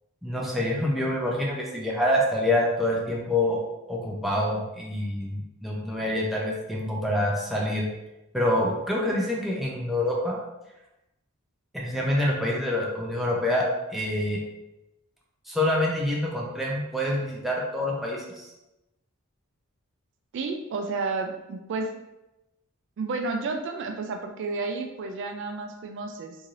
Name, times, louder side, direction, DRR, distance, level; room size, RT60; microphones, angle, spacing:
voice 1, 0.2-3.6 3.9-7.8 8.3-10.4 11.7-13.6 13.9-14.4 15.5-18.4, left 1 dB, ahead, -3 dB, 0.5 m, -26 dB
voice 2, 20.3-21.9 23.0-26.4, right 3 dB, 60° right, 4 dB, 0.3 m, -31 dB
3.1 x 2.7 x 2.4 m, 0.96 s
head